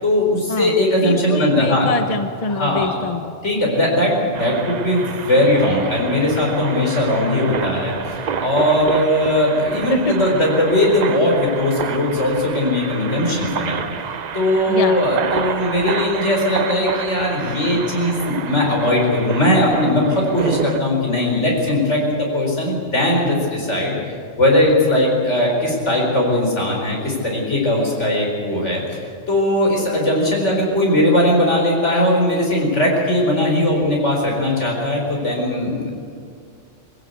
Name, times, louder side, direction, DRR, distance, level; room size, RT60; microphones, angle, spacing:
voice 1, 0.0-1.9 2.6-3.0 3.4-13.8 14.3-24.0 24.4-29.0 29.3-35.9, left 1 dB, 70° left, -1 dB, 5.0 m, -19 dB
voice 2, 1.0-3.4 9.9-10.2 14.7-15.0, left 3 dB, 35° left, 8 dB, 0.9 m, -24 dB
sound 1, 4.3-20.8, right 7 dB, 45° right, 0.6 m, -29 dB
22.0 x 16.0 x 8.3 m, 2.3 s
omnidirectional pair, 1.2 m